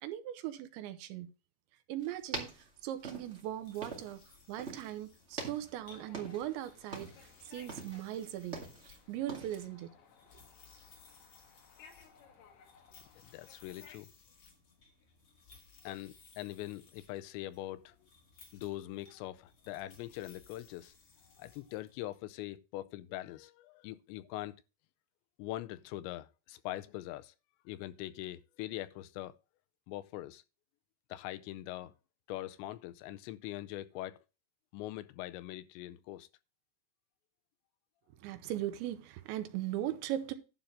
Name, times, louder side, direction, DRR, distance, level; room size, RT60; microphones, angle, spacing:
voice 1, 0.0-1.3 1.9-2.5 2.8-4.2 4.5-7.1 7.5-8.6 8.9-9.9 38.1-40.3, right 12 dB, 90° right, 3.2 m, -39 dB
sound 1, 2.0-4.3 4.6-5.0 5.3-6.6 6.8-7.3 7.7-8.9 9.3-9.6, right 3 dB, 70° right, 0.6 m, -44 dB
sound 2, 3.4-22.2, left 5 dB, 45° left, 2.6 m, -62 dB
sound 3, 5.9-14.0, left 6 dB, 65° left, 3.3 m, -61 dB
voice 2, 12.9-14.1 15.8-18.0 18.5-20.9 21.4-24.6 25.4-27.3 27.7-29.3 29.9-30.4 31.1-31.9 32.3-34.2 34.7-36.3, left 15 dB, 85° left, 2.9 m, -42 dB
11.5 x 3.8 x 7.5 m
omnidirectional pair, 5.1 m